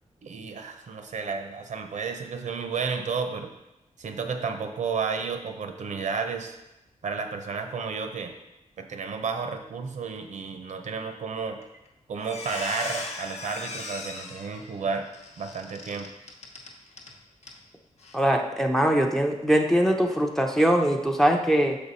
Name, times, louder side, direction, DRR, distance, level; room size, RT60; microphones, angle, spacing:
voice 1, 0.2-3.5 4.0-6.6 7.0-8.3 8.8-11.6 12.1-15.1 15.4-16.1, right 5 dB, 70° right, 5 dB, 0.7 m, -32 dB
Squeak, 11.6-11.9 12.2-17.1 17.4-17.6 18.0-18.2, left 3 dB, 60° left, 1.0 m, -38 dB
voice 2, 18.1-21.8, equal, 5° left, 2 dB, 0.6 m, -22 dB
6.8 x 5.3 x 4.1 m, 0.92 s
wide cardioid pair, 155°, 13 cm